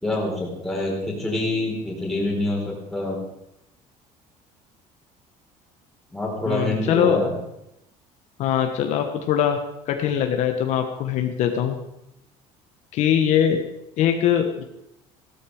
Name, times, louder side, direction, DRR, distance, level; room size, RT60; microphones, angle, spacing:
voice 1, 0.0-3.2 6.1-7.4, left 1 dB, ahead, -4 dB, 4.6 m, -26 dB
voice 2, 6.5-7.2 8.4-9.6 9.9-11.8 12.9-13.6 14.0-14.6, left 9 dB, 60° left, 4 dB, 1.4 m, -22 dB
15.5 x 13.0 x 5.0 m, 0.84 s
cardioid pair, 165°, 14 cm